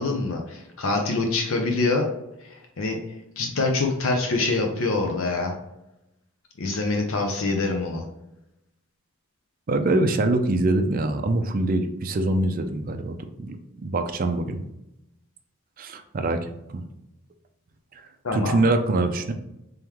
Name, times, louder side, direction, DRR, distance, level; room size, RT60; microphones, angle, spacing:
voice 1, 0.0-2.1 2.8-3.0 3.4-5.5 6.6-8.0 18.2-18.7, left 3 dB, 65° left, 2 dB, 0.6 m, -25 dB
voice 2, 9.7-13.6 13.8-14.6 15.8-16.8 18.3-19.3, right 2 dB, 40° right, 7 dB, 0.4 m, -24 dB
3.7 x 3.4 x 3.0 m, 0.89 s
head